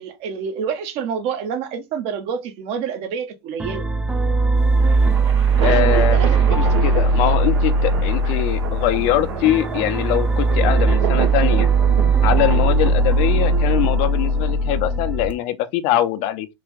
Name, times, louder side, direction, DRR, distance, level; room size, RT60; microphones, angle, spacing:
voice 1, 0.0-3.9 5.6-6.7, right 7 dB, 50° right, 0.9 m, -28 dB
sound 1, 3.6-15.3, right 3 dB, 10° right, 0.6 m, -19 dB
sound 2, 4.6-15.0, right 6 dB, 85° right, 1.1 m, -31 dB
voice 2, 5.6-11.7 12.2-16.5, left 13 dB, 50° left, 0.7 m, -22 dB
3.4 x 2.5 x 3.7 m
hypercardioid pair, 90°, 14 cm